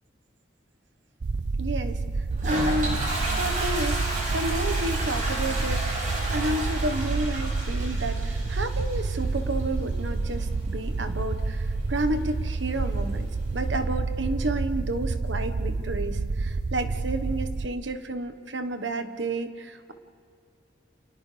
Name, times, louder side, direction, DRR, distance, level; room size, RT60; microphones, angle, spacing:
sound 1, 1.2-17.7, right 3 dB, 65° right, 0.5 m, -29 dB
voice 1, 1.6-2.0 2.4-3.0 3.4-4.0 4.3-13.3 13.5-19.9, right 1 dB, 85° right, 8 dB, 1.4 m, -31 dB
Toilet flush, 2.3-13.7, right 1 dB, 45° right, 6.3 m, -34 dB
30.0 x 28.0 x 3.5 m, 2.4 s
head